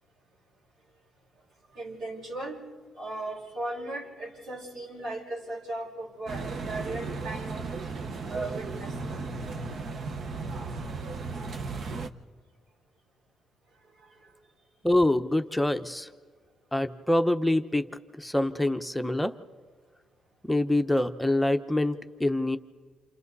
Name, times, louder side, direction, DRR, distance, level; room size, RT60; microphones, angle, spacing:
voice 1, 1.8-2.6 3.0-7.9 8.3-8.9 14.1-14.3, right 2 dB, 75° right, -4 dB, 5.3 m, -37 dB
sound 1, 6.3-12.1, right 4 dB, 55° right, 1.2 m, -35 dB
voice 2, 14.8-16.1 16.7-17.9 18.2-19.3 20.5-22.6, left 1 dB, 5° left, 8 dB, 0.9 m, -25 dB
29.0 x 28.0 x 4.1 m, 1.5 s
cardioid pair, 90°, 0 cm